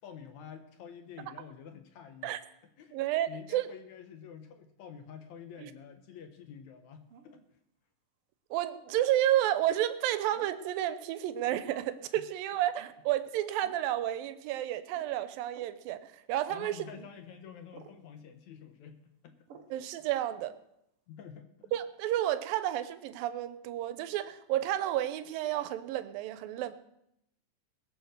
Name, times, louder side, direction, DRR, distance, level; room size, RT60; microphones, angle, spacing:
voice 1, 0.0-2.3 2.8-3.0 3.3-7.4 16.5-19.6 21.1-21.7, left 7 dB, 65° left, 6 dB, 2.1 m, -48 dB
voice 2, 2.9-3.7 5.6-5.7 8.5-16.9 19.7-20.5 21.7-26.7, right 12 dB, 85° right, 13 dB, 2.5 m, -31 dB
sound 1, 7.1-7.5 8.9-9.2 10.3-10.6 11.6-12.0 12.8-13.0 13.6-13.8 14.9-15.1 15.5-15.8 16.9-17.1 17.7-18.0 19.5-19.8, right 7 dB, 65° right, 1.5 m, -54 dB
20.5 x 7.0 x 6.5 m, 0.80 s
omnidirectional pair, 4.0 m